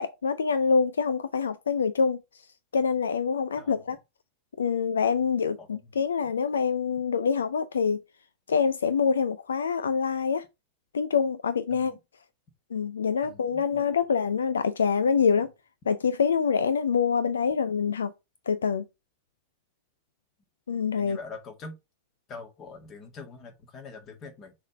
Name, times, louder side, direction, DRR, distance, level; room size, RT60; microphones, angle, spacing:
voice 1, 0.0-2.5 2.7-4.0 4.6-8.0 8.5-10.4 10.9-11.9 12.7-15.5 15.9-18.1 18.5-18.8 20.7-21.2, left 6 dB, 70° left, 0.4 m, -25 dB
voice 2, 3.6-3.9 5.6-5.9 6.2-6.4 11.7-12.0 13.2-13.9 21.0-21.8 22.3-24.5, left 3 dB, 30° left, 1.9 m, -44 dB
6.3 x 3.5 x 5.2 m
figure-of-eight pair, 90°, 0 cm